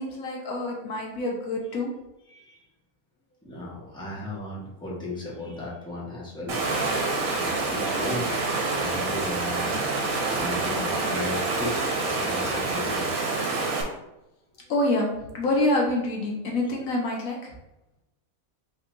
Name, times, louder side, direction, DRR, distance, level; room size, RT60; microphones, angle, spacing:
voice 1, 0.0-1.9 14.7-17.5, left 1 dB, 75° left, -1 dB, 1.4 m, -26 dB
voice 2, 2.3-2.6 3.4-6.6 7.2-11.7 12.1-13.3, left 2 dB, 5° left, -7 dB, 1.3 m, -36 dB
Water, 6.5-13.8, right 3 dB, 75° right, 1.3 m, -27 dB
5.5 x 3.5 x 2.6 m, 0.92 s
omnidirectional pair, 1.5 m